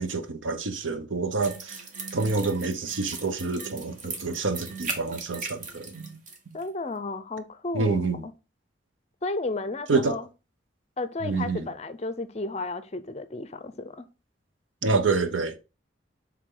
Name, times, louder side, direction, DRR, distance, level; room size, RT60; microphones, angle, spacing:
voice 1, 0.0-1.8 2.1-6.2 6.5-6.6 7.7-8.3 9.9-10.2 11.2-11.7 14.8-15.6, right 3 dB, 90° right, 0.8 m, -27 dB
sound 1, 1.4-6.4 6.6-6.7, right 4 dB, 40° right, 1.3 m, -38 dB
voice 2, 6.5-8.3 9.2-10.3 11.0-14.1, left 2 dB, 35° left, 0.5 m, -33 dB
7.7 x 3.6 x 3.8 m
head